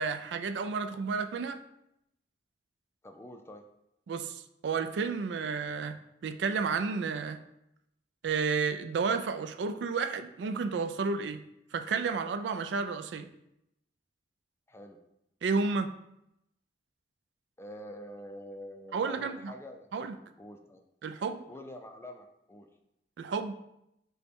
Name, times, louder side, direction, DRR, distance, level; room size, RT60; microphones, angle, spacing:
voice 1, 0.0-1.6 4.1-7.4 8.2-11.4 11.7-13.3 15.4-15.9 18.9-19.5 19.9-20.2 21.0-21.4 23.2-23.5, right 5 dB, 75° right, 10 dB, 0.3 m, -31 dB
voice 2, 3.0-3.6 14.7-15.0 17.6-19.9 20.4-20.8 21.5-22.7, left 1 dB, 15° left, 5 dB, 0.4 m, -46 dB
5.2 x 2.2 x 4.4 m, 0.81 s
head